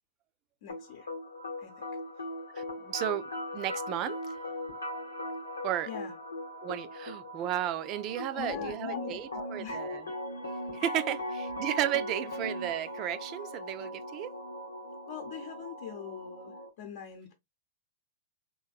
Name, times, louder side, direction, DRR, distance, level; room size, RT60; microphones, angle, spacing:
voice 1, 0.6-1.1 1.6-1.9 5.8-6.1 8.1-9.8 10.1-10.2 15.1-17.3, left 7 dB, 60° left, 0.7 m, -42 dB
sound 1, 0.7-16.7, left 1 dB, 90° left, 0.8 m, -39 dB
voice 2, 2.5-4.2 5.6-5.9 6.6-10.1 10.7-14.4, right 12 dB, 40° right, 0.3 m, -34 dB
3.5 x 2.5 x 2.3 m
hypercardioid pair, 110°, 0 cm